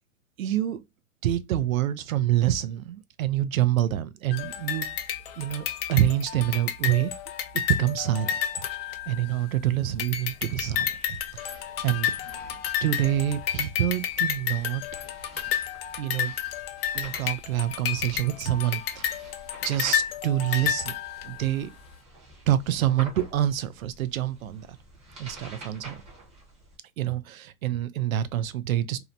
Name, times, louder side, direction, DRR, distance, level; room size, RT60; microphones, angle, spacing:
voice 1, 0.4-0.8 1.2-5.0 5.4-7.1 7.5-8.3 9.1-11.0 11.3-12.1 12.8-14.8 16.0-16.3 16.9-19.3 19.6-20.9 21.2-21.7 22.5-24.8 25.2-26.0 27.0-29.0, right 12 dB, 70° right, 0.5 m, -26 dB
sound 1, 4.3-9.6 10.0-21.5, left 10 dB, 45° left, 0.5 m, -31 dB
sound 2, 9.8-26.8, right 2 dB, 15° right, 0.8 m, -48 dB
2.8 x 2.1 x 2.5 m
hypercardioid pair, 125°, 42 cm